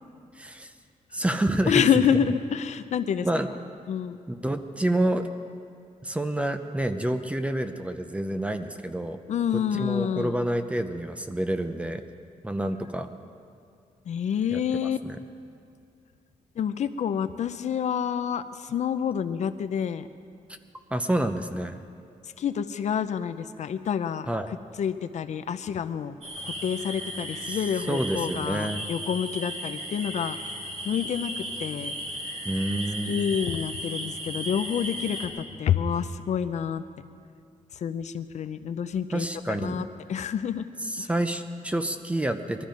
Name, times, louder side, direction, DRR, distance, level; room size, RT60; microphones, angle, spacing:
voice 1, 0.4-0.7 1.1-2.0 3.2-3.5 4.3-5.3 6.0-9.2 9.5-12.0 12.4-13.1 14.5-14.6 15.0-15.2 20.9-21.8 24.3-24.5 27.4-28.9 32.4-33.4 39.1-39.9 40.8-42.6, right 1 dB, 10° right, 8 dB, 0.6 m, -28 dB
voice 2, 1.7-3.3 3.9-4.2 9.3-10.4 14.1-15.0 16.6-20.1 22.4-24.3 24.8-26.1 26.4-30.5 30.8-31.9 33.1-36.8 37.8-40.7 41.0-41.1, left 8 dB, 60° left, 11 dB, 0.5 m, -28 dB
sound 1, 26.2-35.3, equal, 55° right, 2.7 m, -35 dB
20.5 x 13.0 x 5.1 m, 2.5 s
wide cardioid pair, 175°, 13 cm